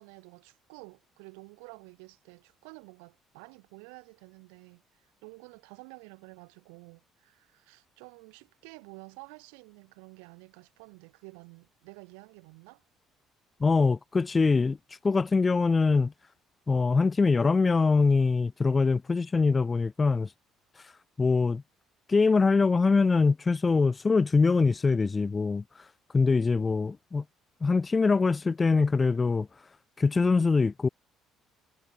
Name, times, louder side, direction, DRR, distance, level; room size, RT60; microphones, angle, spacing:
voice 1, 0.0-12.8, right 40 dB or more, 80° right, 6.8 m, -50 dB
voice 2, 13.6-14.8 15.0-16.1 16.7-20.3 21.2-21.6 22.1-25.6 26.1-27.2 27.6-29.5 30.0-30.9, left 4 dB, 30° left, 1.1 m, -23 dB
hypercardioid pair, 60°, 0 cm